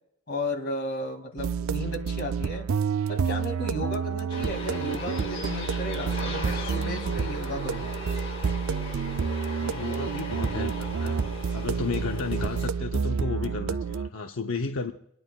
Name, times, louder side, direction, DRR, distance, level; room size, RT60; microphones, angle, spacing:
voice 1, 0.3-2.7 3.1-7.9, left 1 dB, 50° left, 1 dB, 2.4 m, -34 dB
sound 1, 1.4-14.1, right 6 dB, 90° right, 0.4 m, -29 dB
sound 2, 4.3-12.7, left 2 dB, 30° left, 6.6 m, -38 dB
voice 2, 9.6-11.2 11.5-14.9, left 4 dB, 85° left, 4 dB, 0.8 m, -33 dB
28.0 x 11.0 x 2.4 m, 0.76 s
head